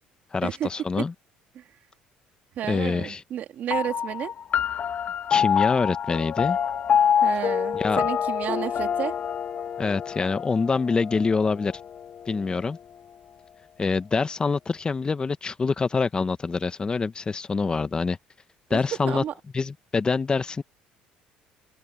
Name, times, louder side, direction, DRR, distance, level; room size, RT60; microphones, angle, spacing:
voice 1, 0.3-1.1 2.7-3.2 5.3-6.6 7.7-8.0 9.8-11.7 12.3-12.8 13.8-18.2 18.7-19.2 19.5-20.6, left 4 dB, 25° left, 1.3 m, -25 dB
voice 2, 2.5-4.3 7.2-9.1 18.7-18.8 19.0-19.3, right 10 dB, 60° right, 3.0 m, -31 dB
sound 1, 3.7-12.5, left 8 dB, 50° left, 2.1 m, -26 dB
open air
supercardioid pair, 85°, 3 cm